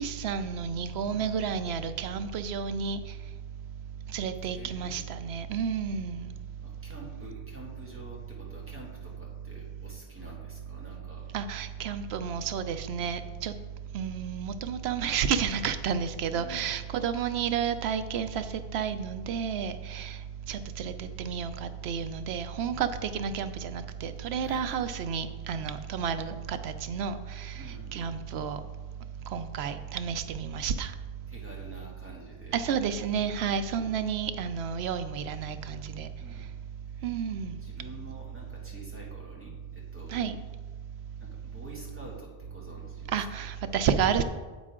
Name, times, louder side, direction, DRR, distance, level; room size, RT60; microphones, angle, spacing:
voice 1, 0.0-3.0 4.1-6.3 11.3-13.5 13.9-18.4 18.7-20.2 20.5-27.6 27.9-28.6 29.3-30.9 32.5-36.1 37.0-37.6 40.1-40.4 43.1-44.2, right 7 dB, 85° right, 11 dB, 0.9 m, -31 dB
voice 2, 1.0-1.5 4.5-5.0 6.6-11.3 12.2-12.4 16.3-16.7 24.4-24.8 27.5-28.1 31.3-32.6 33.1-33.3 36.2-36.5 36.8-37.1 37.6-40.3 41.2-43.5, equal, 10° right, -4 dB, 2.1 m, -48 dB
9.1 x 8.3 x 3.7 m, 1.4 s
omnidirectional pair, 1.0 m